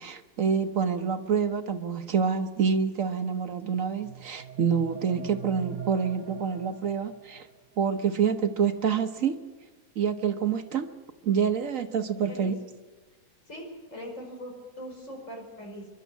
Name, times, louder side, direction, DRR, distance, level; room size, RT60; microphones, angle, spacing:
voice 1, 0.0-7.5 7.8-9.4 10.0-10.9 11.2-12.5, right 6 dB, 65° right, 8 dB, 1.3 m, -27 dB
sound 1, 3.8-7.6, right 8 dB, 35° right, 0.7 m, -43 dB
voice 2, 13.5-15.9, equal, 55° left, 0 dB, 5.9 m, -41 dB
28.0 x 12.0 x 8.2 m, 1.3 s
omnidirectional pair, 1.6 m